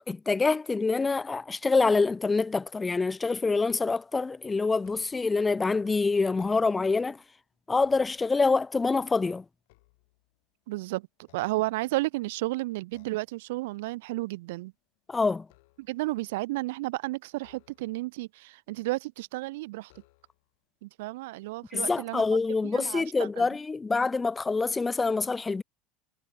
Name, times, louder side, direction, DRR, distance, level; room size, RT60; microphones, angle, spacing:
voice 1, 0.0-7.2 7.7-9.4 15.1-15.5 21.7-25.6, left 4 dB, 15° left, 0.3 m, -26 dB
sound 1, 4.8-5.4 6.2-7.0 7.5-8.6 9.1-10.6 11.2-12.2 12.9-13.4 13.8-14.1 14.4-16.1 17.3-18.2 19.8-20.6 21.4-21.5 22.1-22.9, left 24 dB, 75° left, 3.7 m, -64 dB
voice 2, 10.7-11.1 11.3-14.7 15.8-19.9 20.8-22.2 22.7-23.5, right 20 dB, 80° right, 0.4 m, -32 dB
supercardioid pair, 110°, 0 cm